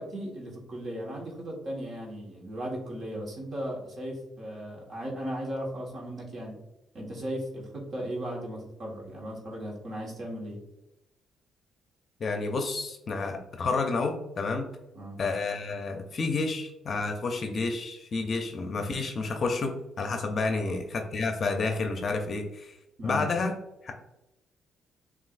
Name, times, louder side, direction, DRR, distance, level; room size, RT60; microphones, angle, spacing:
voice 1, 0.0-6.6 6.9-10.6 14.9-15.2 20.5-20.8 23.0-23.3, equal, 55° right, -2 dB, 1.5 m, -36 dB
voice 2, 12.2-14.7 15.2-22.8 23.0-23.5 23.8-23.9, left 3 dB, 50° left, 5 dB, 0.5 m, -30 dB
7.2 x 2.6 x 2.5 m, 0.92 s
cardioid pair, 90°, 0 cm